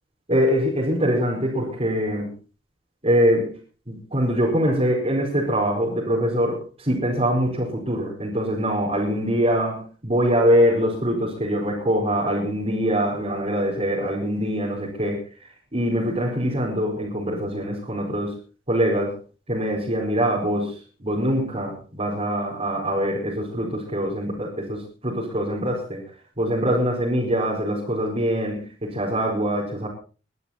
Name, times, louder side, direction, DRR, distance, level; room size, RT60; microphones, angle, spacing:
voice 1, 0.3-2.3 3.0-3.6 3.9-18.4 18.7-19.1 19.5-26.0 26.4-29.9, equal, 35° right, -5 dB, 4.9 m, -23 dB
22.0 x 12.0 x 4.3 m, 0.37 s
head